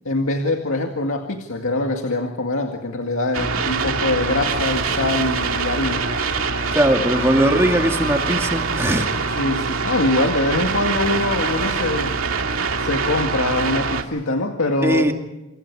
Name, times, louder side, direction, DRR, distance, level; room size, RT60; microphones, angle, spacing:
voice 1, 0.0-6.1 9.4-12.2 12.8-15.1, left 2 dB, 85° left, 3 dB, 2.1 m, -23 dB
sound 1, 3.3-14.0, right 4 dB, 85° right, 2.3 m, -24 dB
sound 2, 4.4-8.7, left 4 dB, 25° left, 5.2 m, -37 dB
voice 2, 6.7-9.1 14.8-15.1, right 1 dB, 15° right, 3 dB, 2.3 m, -19 dB
28.5 x 27.0 x 4.9 m, 0.96 s
head